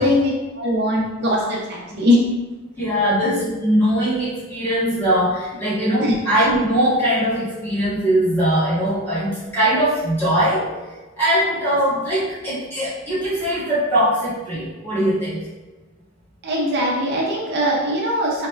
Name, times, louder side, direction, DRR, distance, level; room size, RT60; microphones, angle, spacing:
voice 1, 0.0-2.2 6.0-6.2 16.4-18.5, equal, 50° right, -3 dB, 0.6 m, -21 dB
voice 2, 2.8-10.7 11.2-15.4, equal, 10° left, -11 dB, 1.2 m, -21 dB
3.4 x 3.0 x 2.4 m, 1.2 s
head